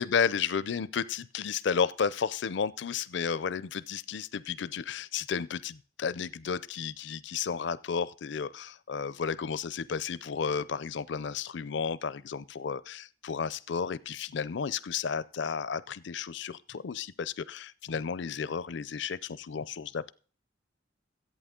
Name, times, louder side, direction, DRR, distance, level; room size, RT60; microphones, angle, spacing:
voice 1, 0.0-20.1, left 6 dB, 65° left, 0.4 m, -32 dB
13.5 x 8.6 x 3.7 m
head